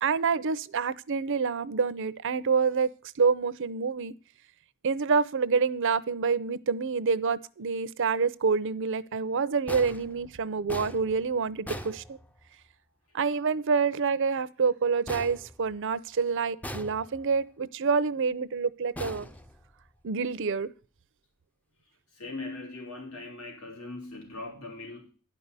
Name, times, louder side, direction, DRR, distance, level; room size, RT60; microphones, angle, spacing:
voice 1, 0.0-2.9 3.2-4.1 4.8-11.9 13.1-19.3 20.0-20.7, right 5 dB, 60° right, 0.6 m, -27 dB
sound 1, 9.7-12.7 15.1-16.2 16.6-17.5 19.0-20.1, equal, 5° left, 0.5 m, -42 dB
voice 2, 22.1-25.1, left 2 dB, 80° left, 3.1 m, -40 dB
11.0 x 5.5 x 8.1 m
head